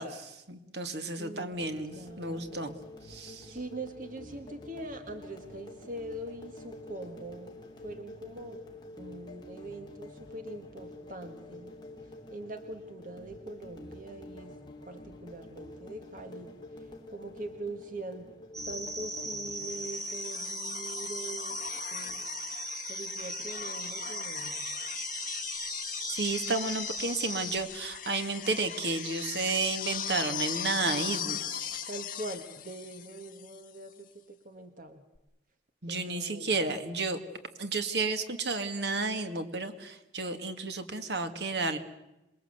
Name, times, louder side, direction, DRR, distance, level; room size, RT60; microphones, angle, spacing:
voice 1, 0.0-2.8 3.1-3.6 26.1-31.9 35.8-37.2 37.6-41.8, right 3 dB, 70° right, 8 dB, 2.2 m, -32 dB
voice 2, 1.2-1.5 1.9-2.6 3.2-8.6 9.0-11.8 12.3-14.5 14.9-16.5 17.1-18.3 18.7-22.3 22.9-24.7 31.9-35.0 35.9-36.8, right 2 dB, 45° right, 7 dB, 1.7 m, -43 dB
sound 1, 1.5-19.9, left 1 dB, 25° left, 3.2 m, -48 dB
sound 2, 18.5-27.6, right 1 dB, 20° right, 3.9 m, -38 dB
sound 3, 19.7-33.7 35.2-35.3, left 9 dB, 45° left, 1.6 m, -39 dB
27.0 x 21.5 x 8.1 m, 0.93 s
head